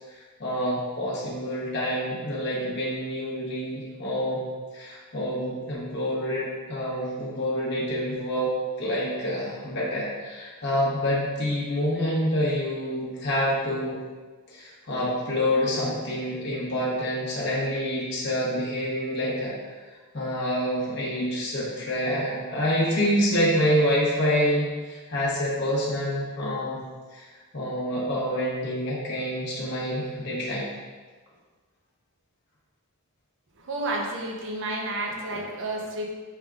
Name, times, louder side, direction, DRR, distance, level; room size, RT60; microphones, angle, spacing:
voice 1, 0.4-4.4 4.7-8.5 8.8-13.9 14.5-19.5 20.1-26.8 27.1-27.2 27.5-30.7, equal, 50° left, -6 dB, 1.0 m, -27 dB
voice 2, 33.6-36.1, right 1 dB, 60° right, 1 dB, 0.7 m, -31 dB
5.6 x 3.6 x 2.4 m, 1.4 s
head